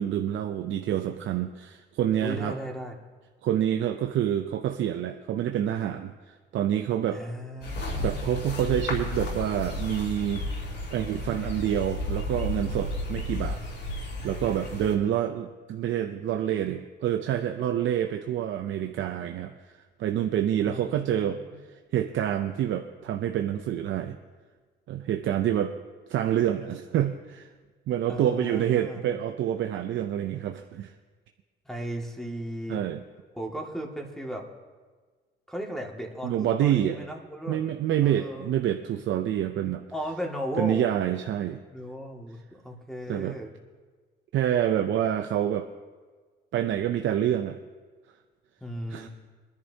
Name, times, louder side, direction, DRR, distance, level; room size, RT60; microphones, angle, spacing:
voice 1, 0.0-2.6 3.4-7.2 8.0-10.5 10.9-13.6 14.2-21.4 21.9-24.2 24.9-25.7 26.1-27.5 27.9-30.9 32.7-33.0 36.2-37.0 37.5-39.8 40.6-41.6 43.1-43.4 44.3-45.7 46.5-47.6 48.9-49.1, right 10 dB, 75° right, 6 dB, 0.6 m, -27 dB
voice 2, 2.2-3.0 7.1-8.4 20.6-21.5 28.1-29.0 31.7-32.8 33.3-34.4 35.5-37.7 38.0-38.5 39.9-40.9 41.7-43.5 48.6-49.1, equal, ahead, 0 dB, 2.1 m, -36 dB
sound 1, 7.6-14.9, left 1 dB, 65° left, 4.2 m, -33 dB
22.5 x 11.0 x 2.8 m, 1.4 s
cardioid pair, 90°, 20 cm